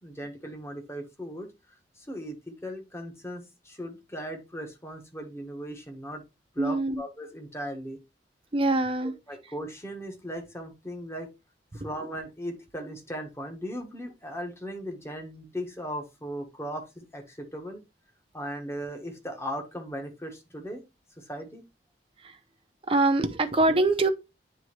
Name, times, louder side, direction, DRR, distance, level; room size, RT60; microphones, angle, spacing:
voice 1, 0.0-1.5 2.0-6.2 6.5-8.0 9.3-11.3 11.7-17.8 18.3-20.8 21.2-21.6, equal, 15° left, 1.3 m, -37 dB
voice 2, 6.6-7.0 8.5-9.1 11.7-11.9 22.2-22.4 22.9-24.1, right 2 dB, 30° right, 0.7 m, -24 dB
9.1 x 3.5 x 3.1 m
head